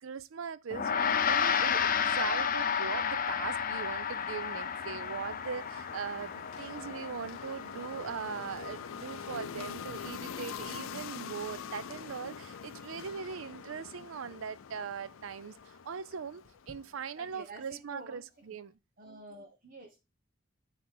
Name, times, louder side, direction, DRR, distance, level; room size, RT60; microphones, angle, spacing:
voice 1, 0.0-18.8, right 6 dB, 80° right, 0.5 m, -40 dB
Gong, 0.7-10.2, left 7 dB, 45° left, 0.6 m, -32 dB
sound 1, 2.7-17.0, left 7 dB, 90° left, 0.5 m, -45 dB
voice 2, 17.1-18.2 19.0-20.0, right 2 dB, 45° right, 1.1 m, -49 dB
8.6 x 3.2 x 4.6 m
head